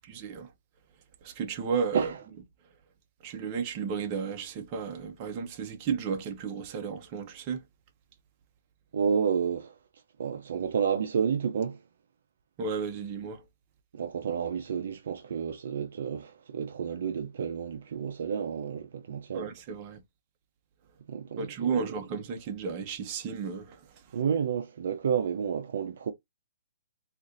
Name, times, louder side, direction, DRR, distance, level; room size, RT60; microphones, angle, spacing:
voice 1, 0.1-0.5 1.2-2.1 3.2-7.6 12.6-13.4 19.3-20.0 21.4-23.8, right 6 dB, 30° right, 0.8 m, -33 dB
voice 2, 8.9-9.7 10.2-11.8 13.9-19.5 21.1-21.9 24.1-26.1, right 7 dB, 65° right, 0.5 m, -30 dB
4.0 x 2.5 x 2.6 m
hypercardioid pair, 150°, 0 cm